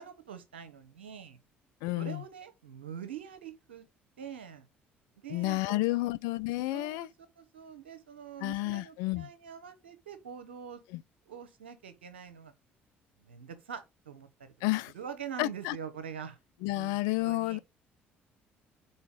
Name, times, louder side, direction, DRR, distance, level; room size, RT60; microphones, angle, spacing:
voice 1, 0.0-1.4 2.0-3.9 4.2-4.7 5.2-6.1 6.7-7.1 7.4-10.8 11.3-12.5 13.2-14.5 14.9-16.4 16.7-17.0 17.2-17.6, right 7 dB, 85° right, 0.9 m, -44 dB
voice 2, 1.8-2.2 5.3-7.1 8.4-9.3 10.9-11.0 14.6-14.9 15.4-15.7 16.6-17.6, left 20 dB, 70° left, 0.3 m, -31 dB
5.5 x 4.3 x 4.7 m
hypercardioid pair, 50°, 6 cm